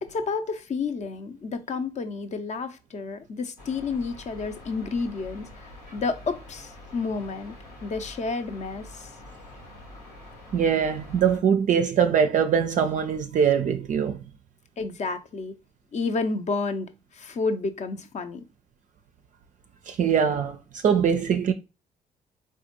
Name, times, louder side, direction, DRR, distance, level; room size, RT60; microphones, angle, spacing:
voice 1, 0.0-7.5 7.8-9.1 14.8-15.6 15.9-18.4, left 4 dB, 35° left, 0.6 m, -30 dB
sound 1, 3.6-11.4, left 1 dB, 85° left, 1.1 m, -46 dB
voice 2, 10.5-14.2 19.9-21.5, right 7 dB, 40° right, 0.4 m, -22 dB
4.1 x 2.1 x 2.9 m
figure-of-eight pair, 45°, 20 cm